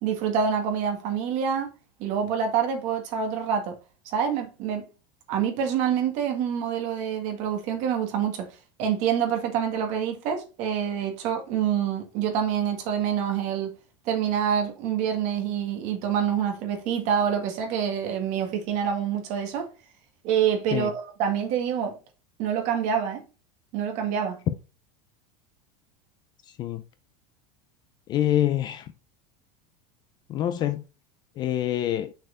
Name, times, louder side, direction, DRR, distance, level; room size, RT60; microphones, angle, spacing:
voice 1, 0.0-1.7 2.0-3.8 4.1-4.9 5.3-8.5 8.8-13.7 14.1-19.7 20.2-21.9 22.4-23.2 23.7-24.4, right 8 dB, 45° right, 1.9 m, -26 dB
voice 2, 26.5-26.8 28.1-28.9 30.3-30.8 31.4-32.1, left 12 dB, 25° left, 0.3 m, -26 dB
6.3 x 4.4 x 4.4 m
supercardioid pair, 170°, 18 cm